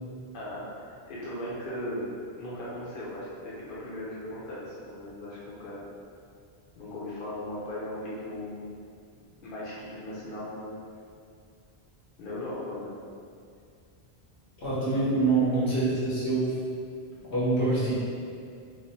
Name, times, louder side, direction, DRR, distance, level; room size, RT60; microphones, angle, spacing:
voice 1, 0.3-2.1 2.4-5.8 6.8-8.7 9.4-10.7 12.2-13.0, left 1 dB, 55° left, -8 dB, 0.9 m, -37 dB
voice 2, 14.6-16.5 17.3-17.9, right 3 dB, 80° left, -9 dB, 1.4 m, -25 dB
3.2 x 2.1 x 4.1 m, 2.3 s
omnidirectional pair, 1.1 m